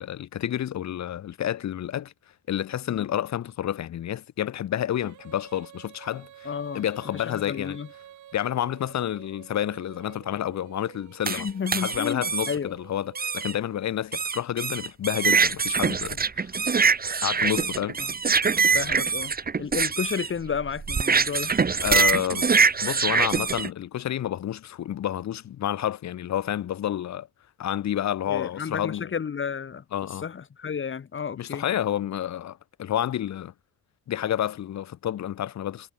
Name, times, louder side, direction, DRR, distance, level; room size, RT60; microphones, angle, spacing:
voice 1, 0.0-2.1 2.5-6.5 6.7-7.8 8.3-11.5 11.8-16.5 17.2-18.0 21.8-22.5 22.8-27.3 27.6-29.1 29.9-30.3 31.4-33.5 34.1-35.9, left 11 dB, 65° left, 2.0 m, -29 dB
Female singing, 5.0-14.1, right 12 dB, 75° right, 6.2 m, -50 dB
voice 2, 6.4-6.8 7.1-7.9 11.3-12.7 18.0-18.1 18.7-19.3 19.6-21.7 28.3-31.6, left 6 dB, 40° left, 2.4 m, -32 dB
sound 1, 11.3-12.5 13.2-13.5 14.1-23.7, right 5 dB, 30° right, 1.8 m, -24 dB
cardioid pair, 90°, 30 cm